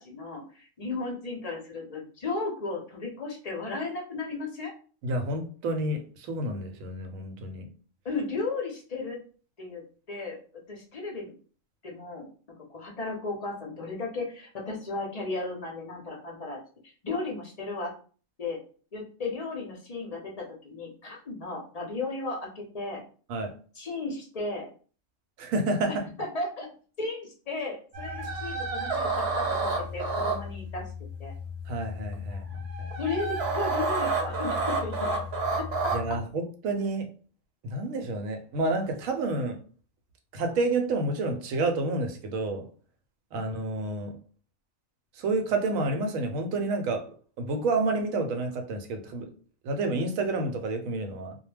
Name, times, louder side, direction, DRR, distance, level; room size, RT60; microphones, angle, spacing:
voice 1, 0.0-4.7 8.0-9.2 9.6-9.8 10.1-10.4 10.7-11.3 11.8-12.3 12.7-16.6 16.8-17.9 18.4-18.6 18.9-23.0 23.7-24.7 26.2-30.9 31.2-31.3 32.3-32.4 33.0-35.2 35.8-36.0, left 3 dB, 50° left, 0.4 m, -35 dB
voice 2, 5.0-7.7 23.3-23.5 25.4-26.0 31.7-32.4 32.8-32.9 35.9-37.1 37.6-39.6 40.3-42.6 43.3-44.1 45.2-47.1 47.4-49.3 49.6-51.3, right 2 dB, 90° right, 1.0 m, -29 dB
sound 1, 27.9-36.2, right 2 dB, 60° right, 0.8 m, -30 dB
2.2 x 2.1 x 3.2 m
omnidirectional pair, 1.4 m